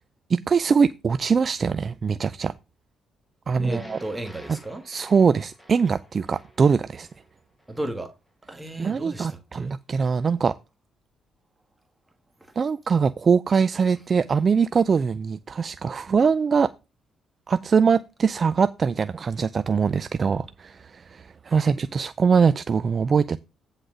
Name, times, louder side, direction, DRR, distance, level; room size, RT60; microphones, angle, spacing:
voice 1, 0.3-2.5 3.5-4.0 4.5-4.6 4.9-7.1 8.8-10.5 12.6-16.7 17.5-23.4, right 5 dB, 40° right, 0.4 m, -22 dB
sound 1, 3.6-7.9, left 1 dB, 10° left, 2.3 m, -46 dB
voice 2, 3.6-4.8 7.7-8.1 8.5-9.7 21.5-21.7, right 1 dB, 15° right, 1.5 m, -34 dB
9.9 x 4.0 x 6.2 m
cardioid pair, 90°, 0 cm